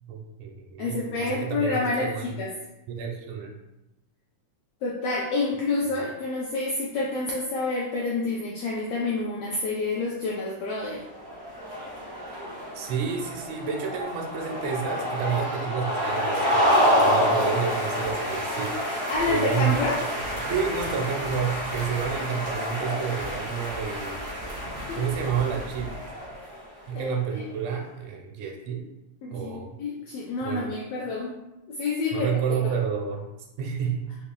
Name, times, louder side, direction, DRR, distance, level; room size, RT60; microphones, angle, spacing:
voice 1, 0.1-2.4 2.9-3.6 12.8-18.9 19.3-19.7 20.5-24.2 25.0-25.9 26.9-28.9 29.3-29.8 30.4-30.7 32.1-33.2 33.6-34.2, right 7 dB, 90° right, 1 dB, 2.0 m, -30 dB
voice 2, 0.8-2.5 4.8-11.0 18.8-20.1 24.9-25.0 26.9-27.5 29.2-31.4 31.7-32.3 32.6-32.7, left 3 dB, 85° left, -3 dB, 1.4 m, -28 dB
sound 1, 11.0-26.7, equal, 40° right, 0.6 m, -28 dB
4.7 x 2.9 x 2.3 m, 0.94 s
omnidirectional pair, 3.3 m